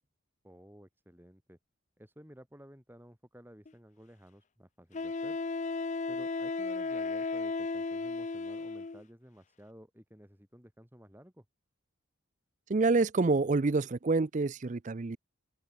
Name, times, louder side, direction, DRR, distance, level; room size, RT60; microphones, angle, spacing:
voice 1, 0.4-1.6 2.0-5.4 6.1-11.4, equal, 10° right, 4.2 m, -55 dB
Wind instrument woodwind instrument, 3.7-3.8 4.9-9.0, left 3 dB, 35° left, 0.5 m, -34 dB
voice 2, 12.7-15.2, right 3 dB, 35° right, 0.5 m, -27 dB
open air
head